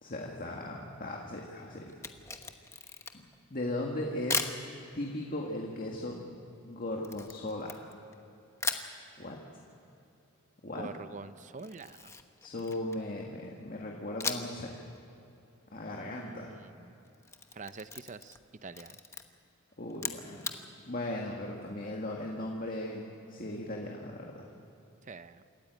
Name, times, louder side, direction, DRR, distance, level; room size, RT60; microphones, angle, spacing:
voice 1, 0.0-1.9 3.1-3.2 3.5-4.5 4.9-6.2 6.6-7.9 9.2-9.4 10.6-10.9 12.4-14.8 15.7-16.6 19.8-20.5 20.9-24.5, left 1 dB, 40° left, 0 dB, 1.8 m, -37 dB
Camera, 1.9-3.4 4.3-4.6 7.0-8.2 8.6-8.9 11.6-13.1 14.2-14.6 15.0-15.1 17.0-18.4 18.7-19.2 19.9-20.6, left 4 dB, 15° left, 1.0 m, -37 dB
voice 2, 10.7-12.0 15.9-16.9 17.6-18.4 18.6-19.0 25.1-25.4, right 4 dB, 35° right, 13 dB, 0.6 m, -45 dB
27.0 x 14.0 x 9.2 m, 2.7 s
head